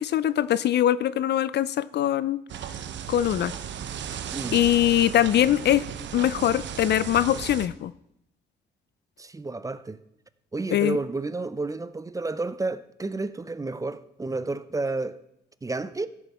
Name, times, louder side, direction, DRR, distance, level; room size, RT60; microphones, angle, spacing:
voice 1, 0.0-2.4 3.1-3.5 4.5-5.8 6.1-7.9 10.7-11.0, left 11 dB, 60° left, 0.4 m, -22 dB
sound 1, 2.5-7.7, right 9 dB, 65° right, 0.8 m, -35 dB
voice 2, 9.2-10.0 10.5-15.2 15.6-16.1, right 3 dB, 15° right, 0.5 m, -31 dB
15.5 x 6.8 x 4.2 m
cardioid pair, 90°, 20 cm